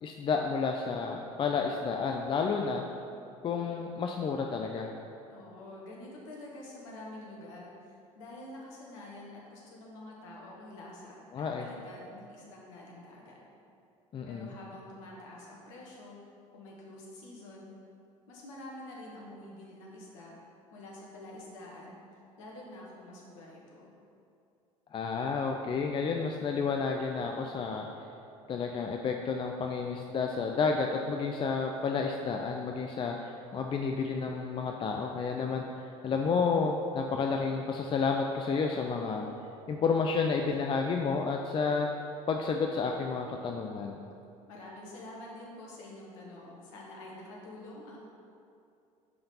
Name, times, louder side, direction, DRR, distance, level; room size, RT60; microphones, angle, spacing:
voice 1, 0.0-2.8 3.4-4.9 11.3-11.6 14.1-14.5 24.9-27.9 28.5-39.3 39.7-41.9 42.3-44.0, left 5 dB, 30° left, 2 dB, 0.4 m, -31 dB
voice 2, 5.3-13.4 14.3-16.2 16.5-17.7 18.3-20.4 20.7-23.9 44.5-48.0, left 1 dB, 65° left, -3 dB, 1.3 m, -47 dB
5.2 x 4.8 x 5.4 m, 2.6 s
figure-of-eight pair, 60°, 18 cm